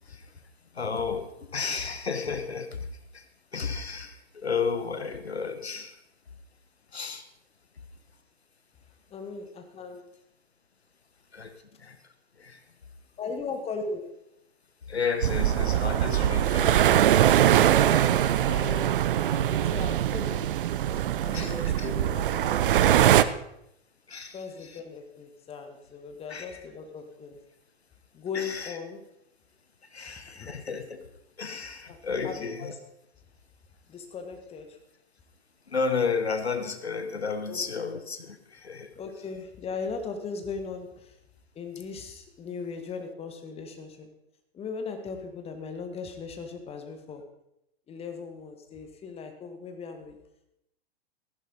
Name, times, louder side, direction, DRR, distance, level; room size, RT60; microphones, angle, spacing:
voice 1, 0.0-3.3 3.5-6.0 6.9-7.3 11.3-12.6 14.9-17.0 21.3-21.9 24.1-24.8 26.3-26.6 28.3-28.8 29.8-31.1 31.4-32.7 35.7-38.9, left 5 dB, 80° left, 9 dB, 1.2 m, -33 dB
voice 2, 9.1-10.0 13.2-14.1 17.8-19.0 19.3-20.5 21.2-23.4 24.3-27.4 28.1-29.0 30.1-30.5 31.9-32.0 32.2-32.8 33.9-34.8 37.5-37.6 39.0-41.2 41.6-44.1 44.5-47.2 47.9-50.2, left 5 dB, 20° left, 6 dB, 1.6 m, -38 dB
sound 1, 15.2-23.2, right 11 dB, 55° right, 0.7 m, -22 dB
15.0 x 11.0 x 4.0 m, 0.81 s
figure-of-eight pair, 100°, 31 cm